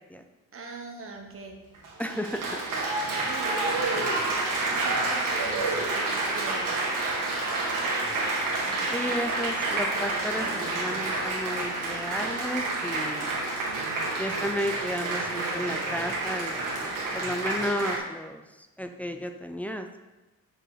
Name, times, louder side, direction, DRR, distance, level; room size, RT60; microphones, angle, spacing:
voice 1, 0.5-1.6 3.0-4.1 4.4-6.9 8.6-9.2 9.9-10.7, right 3 dB, 40° right, 2 dB, 1.1 m, -43 dB
Applause, 1.7-18.0, right 2 dB, 60° right, 1.8 m, -29 dB
voice 2, 2.0-2.4 8.9-13.4 14.2-20.0, equal, 5° left, 5 dB, 0.3 m, -33 dB
6.2 x 4.8 x 5.0 m, 1.1 s
cardioid pair, 155°, 35 cm